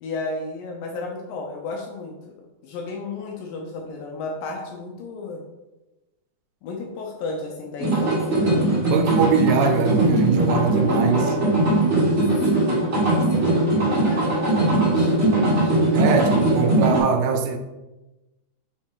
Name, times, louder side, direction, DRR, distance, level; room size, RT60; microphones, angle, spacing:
voice 1, 0.0-2.3 2.6-5.4 6.6-8.5 12.5-15.8, left 3 dB, 75° left, 2.1 m, -33 dB
sound 1, 7.8-17.0, right 2 dB, 40° right, 0.9 m, -20 dB
voice 2, 8.8-11.4 15.9-17.6, right 5 dB, 80° right, 2.5 m, -22 dB
5.7 x 4.6 x 4.5 m
omnidirectional pair, 4.5 m